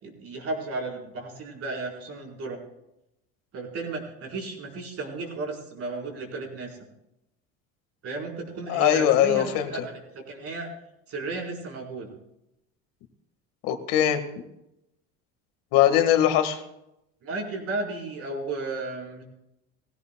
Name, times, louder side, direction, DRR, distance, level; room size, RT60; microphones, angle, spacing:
voice 1, 0.0-2.6 3.5-6.8 8.0-10.7 11.1-12.1 17.2-19.2, right 3 dB, 45° right, 0 dB, 4.5 m, -34 dB
voice 2, 8.7-9.7 13.6-14.2 15.7-16.6, left 11 dB, 70° left, 8 dB, 1.8 m, -21 dB
20.5 x 16.0 x 2.3 m, 0.86 s
cardioid pair, 125°, 34 cm